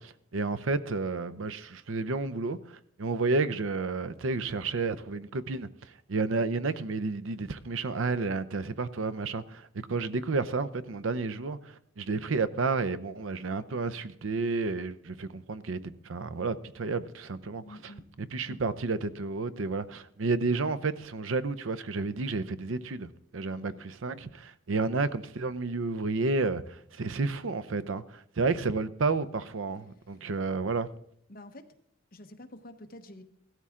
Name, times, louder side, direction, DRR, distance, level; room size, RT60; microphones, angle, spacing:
voice 1, 0.0-17.8 18.3-23.7 24.0-30.9, right 3 dB, 75° right, 0.6 m, -31 dB
voice 2, 17.6-18.1 18.5-18.8 23.5-23.8 24.7-24.8 28.4-28.6 30.1-30.2 31.3-31.7 32.1-33.2, left 1 dB, 45° left, 1.1 m, -49 dB
16.5 x 13.0 x 3.7 m
head